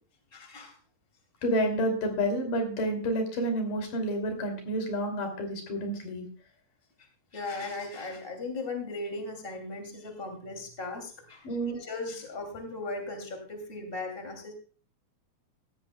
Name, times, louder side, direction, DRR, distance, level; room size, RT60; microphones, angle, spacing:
voice 1, 0.3-0.8 7.3-14.5, left 3 dB, 20° left, 4 dB, 2.5 m, -37 dB
voice 2, 1.4-6.2 11.4-11.8, equal, 90° left, 5 dB, 4.4 m, -29 dB
16.5 x 13.5 x 2.2 m, 0.40 s
omnidirectional pair, 3.7 m